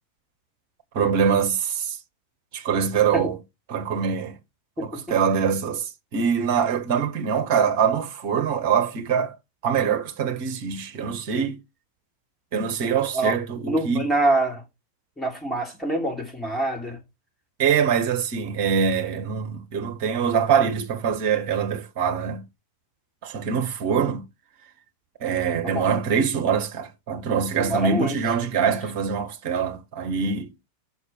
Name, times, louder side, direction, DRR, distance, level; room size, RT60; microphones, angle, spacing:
voice 1, 0.9-2.0 2.5-3.4 3.7-4.3 4.8-9.4 9.6-11.6 12.5-14.0 17.6-22.4 23.2-24.2 25.2-30.5, right 7 dB, 45° right, 1.7 m, -24 dB
voice 2, 13.6-14.6 15.2-17.0 25.6-25.9 27.6-28.2, right 2 dB, 5° left, 3.5 m, -25 dB
6.6 x 6.1 x 4.6 m
figure-of-eight pair, 90°, 0 cm